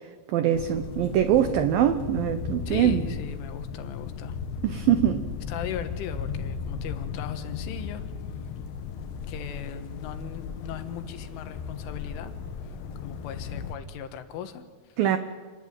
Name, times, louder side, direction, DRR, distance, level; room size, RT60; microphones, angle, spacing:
voice 1, 0.3-3.1 4.6-5.3 15.0-15.2, right 11 dB, 85° right, 10 dB, 2.0 m, -23 dB
sound 1, 0.5-13.8, left 6 dB, 65° left, 3.0 m, -35 dB
voice 2, 2.7-4.4 5.5-8.1 9.3-12.4 12.6-15.0, left 9 dB, 85° left, 9 dB, 4.0 m, -38 dB
28.0 x 20.0 x 8.9 m, 1.5 s
omnidirectional pair, 5.5 m